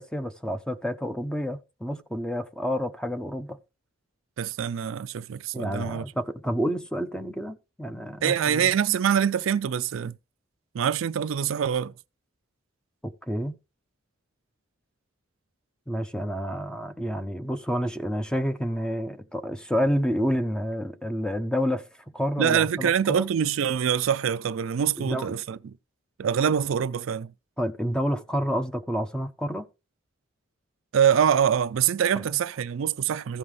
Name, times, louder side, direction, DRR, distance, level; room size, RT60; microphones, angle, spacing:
voice 1, 0.0-3.6 5.5-8.7 13.3-13.6 15.9-21.9 22.1-23.2 25.0-25.3 27.6-29.7 32.1-32.2, equal, 5° left, 0.6 m, -29 dB
voice 2, 4.4-6.0 8.2-10.2 10.7-11.9 22.4-25.7 26.2-27.3 30.9-33.4, right 8 dB, 70° right, 0.4 m, -24 dB
15.5 x 5.5 x 3.2 m
head